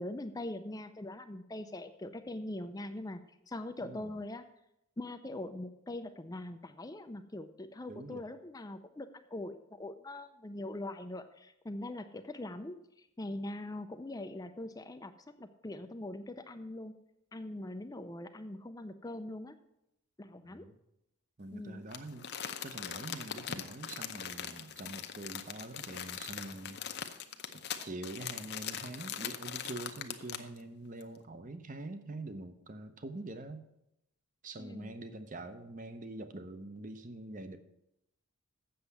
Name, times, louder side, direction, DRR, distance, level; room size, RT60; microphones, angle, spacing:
voice 1, 0.0-4.4 5.0-16.9 17.3-19.6 20.2-20.7 21.5-21.8 34.6-34.9, left 1 dB, 15° left, 8 dB, 0.4 m, -42 dB
voice 2, 3.8-4.2 7.9-8.2 20.4-20.8 21.4-22.3 22.6-26.8 27.5-33.6 34.4-37.6, right 2 dB, 35° right, 9 dB, 0.8 m, -45 dB
Crumpling crinkling, 21.9-30.6 31.0-31.1, left 8 dB, 50° left, 0.7 m, -41 dB
7.9 x 6.7 x 8.2 m, 0.83 s
head